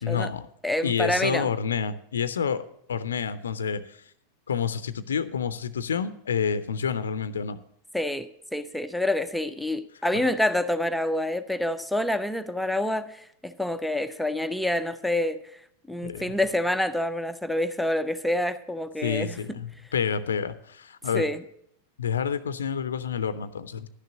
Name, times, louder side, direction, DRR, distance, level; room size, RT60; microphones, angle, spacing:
voice 1, 0.0-0.5 0.8-2.6 2.9-4.0 4.5-7.6 10.1-10.3 16.0-16.4 19.0-21.3 22.0-23.9, left 7 dB, 65° left, 0.5 m, -28 dB
voice 2, 0.6-1.5 7.9-15.4 15.9-19.4 21.1-21.4, left 1 dB, ahead, 0.5 m, -27 dB
11.5 x 6.6 x 7.6 m
figure-of-eight pair, 90°, 0 cm